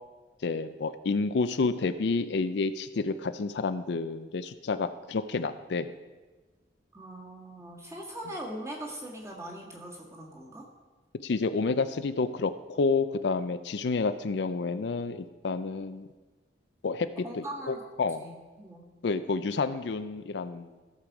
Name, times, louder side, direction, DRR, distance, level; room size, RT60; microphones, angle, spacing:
voice 1, 0.4-5.9 11.2-16.1 16.8-17.1 17.7-18.3 19.0-20.7, left 4 dB, 65° left, 11 dB, 0.4 m, -29 dB
voice 2, 6.9-10.7 17.2-17.8 18.2-18.9, right 1 dB, 15° right, -2 dB, 1.8 m, -41 dB
15.0 x 6.8 x 4.8 m, 1.3 s
head